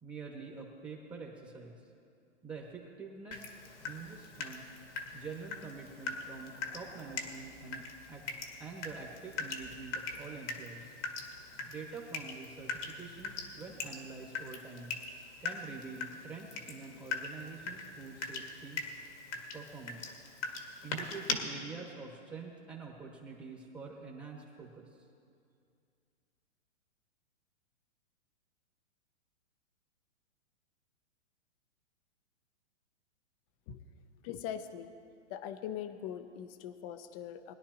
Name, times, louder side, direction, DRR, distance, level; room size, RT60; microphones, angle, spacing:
voice 1, 0.0-1.8 2.4-3.5 3.8-4.6 5.1-8.2 8.6-11.0 11.6-14.9 15.4-18.8 19.5-20.2 20.8-25.0, right 4 dB, 15° right, -2 dB, 1.2 m, -46 dB
Water tap faucet / Drip, 3.3-21.3, left 4 dB, 70° left, 1.9 m, -42 dB
voice 2, 34.2-34.9 35.3-37.5, left 9 dB, 30° left, 10 dB, 0.6 m, -41 dB
21.0 x 11.0 x 2.9 m, 2.4 s
hypercardioid pair, 140°, 37 cm